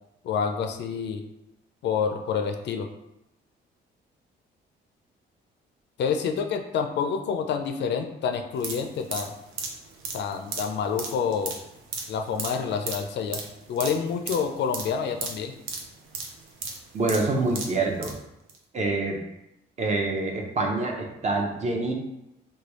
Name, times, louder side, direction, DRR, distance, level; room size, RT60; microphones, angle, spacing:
voice 1, 0.2-1.2 1.8-2.9 6.0-9.4 10.1-11.6 12.1-13.4 13.7-15.5, left 6 dB, 60° left, 5 dB, 0.4 m, -28 dB
sound 1, 8.5-18.2 18.5-18.6, right 4 dB, 90° right, 0.6 m, -36 dB
voice 2, 16.9-18.2 18.7-19.2 19.8-21.9, right 3 dB, 35° right, 1 dB, 0.6 m, -26 dB
3.1 x 2.3 x 2.9 m, 0.87 s
cardioid pair, 90°, 20 cm